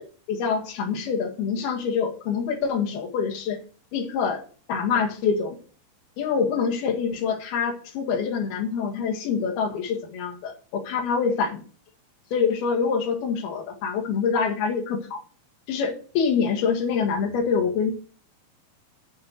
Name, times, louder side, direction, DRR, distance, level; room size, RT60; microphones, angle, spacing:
voice 1, 0.3-3.6 3.9-4.4 4.7-5.6 6.2-11.6 12.3-15.2 15.7-17.9, left 6 dB, 85° left, 1 dB, 3.8 m, -25 dB
8.5 x 6.6 x 7.8 m, 0.41 s
omnidirectional pair, 4.3 m